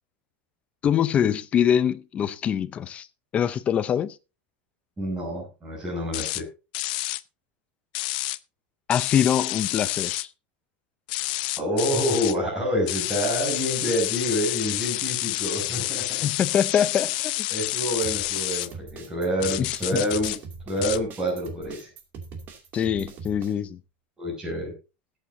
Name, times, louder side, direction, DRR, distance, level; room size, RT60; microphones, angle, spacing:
voice 1, 0.8-3.1 3.3-4.2 8.9-10.3 16.2-17.5 19.6-19.7 22.7-23.8, left 9 dB, 20° left, 0.7 m, -24 dB
voice 2, 5.0-6.4 11.6-16.2 17.5-20.4 20.7-21.9 24.2-24.7, equal, 10° right, 6.6 m, -27 dB
sound 1, 6.1-6.4 6.7-7.2 8.0-8.4 8.9-10.3 11.1-12.4 12.9-18.7 19.4-20.4 20.8-21.0, left 20 dB, 55° left, 0.6 m, -29 dB
sound 2, 18.0-23.5, right 4 dB, 35° right, 2.6 m, -41 dB
21.0 x 8.7 x 2.7 m
supercardioid pair, 165°, 6 cm